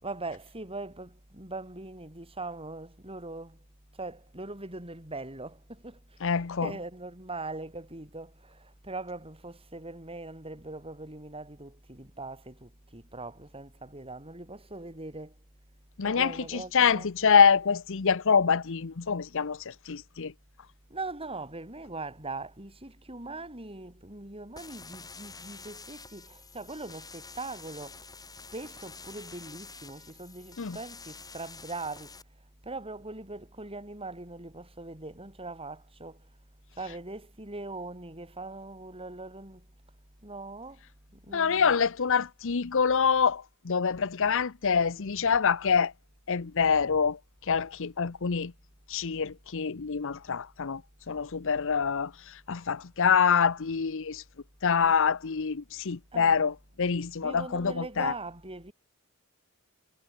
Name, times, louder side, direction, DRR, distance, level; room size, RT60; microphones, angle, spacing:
voice 1, 0.0-3.6 3.9-15.3 16.0-17.1 20.9-28.0 28.5-32.2 32.6-36.3 36.8-39.7 40.2-40.8 41.2-41.8 54.8-55.0 56.1-56.4 57.2-58.7, right 2 dB, 25° right, 6.1 m, -41 dB
voice 2, 6.2-6.7 16.0-20.3 30.6-30.8 41.3-45.9 46.3-47.2 47.5-48.5 48.9-50.8 51.1-54.2 54.6-58.1, left 6 dB, 60° left, 0.8 m, -26 dB
sound 1, 24.6-32.2, left 4 dB, 15° left, 3.7 m, -48 dB
head